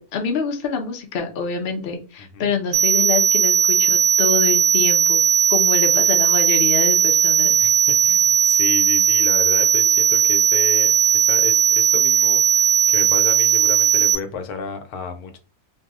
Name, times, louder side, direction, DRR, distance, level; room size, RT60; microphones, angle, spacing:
voice 1, 0.0-5.2 5.5-7.6, left 5 dB, 55° left, 0.6 m, -26 dB
voice 2, 2.2-2.5 7.6-15.4, left 5 dB, 80° left, 1.1 m, -32 dB
sound 1, 2.7-14.2, right 8 dB, 75° right, 1.0 m, -17 dB
2.6 x 2.0 x 3.5 m
omnidirectional pair, 1.6 m